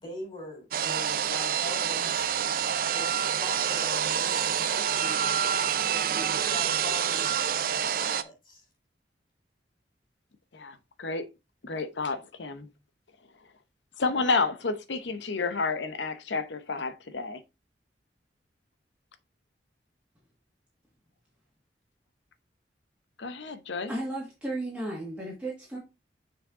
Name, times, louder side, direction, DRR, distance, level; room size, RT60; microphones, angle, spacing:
voice 1, 0.0-2.3 2.9-3.1 3.4-5.5 5.8-7.4 7.7-8.6, left 1 dB, 30° left, 4.0 m, -42 dB
sound 1, 0.7-8.2, right 8 dB, 50° right, 0.5 m, -27 dB
voice 2, 10.5-11.3 11.6-12.7 14.0-17.4 23.2-23.9, left 4 dB, 80° left, 0.8 m, -30 dB
voice 3, 23.9-25.8, right 1 dB, 5° right, 1.8 m, -34 dB
6.5 x 4.8 x 3.6 m
head